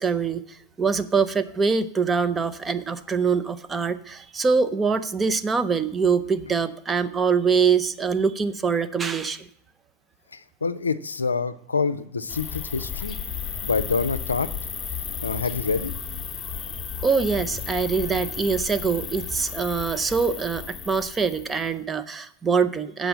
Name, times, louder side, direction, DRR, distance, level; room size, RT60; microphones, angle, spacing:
voice 1, 0.0-9.5 17.0-23.1, right 5 dB, 15° right, 11 dB, 0.6 m, -24 dB
voice 2, 10.3-13.2 13.6-14.5 15.2-15.9, left 4 dB, 75° left, 12 dB, 0.5 m, -26 dB
sound 1, 12.3-21.7, left 7 dB, 15° left, 1.0 m, -34 dB
7.8 x 5.1 x 7.4 m, 0.69 s
figure-of-eight pair, 90°, 0 cm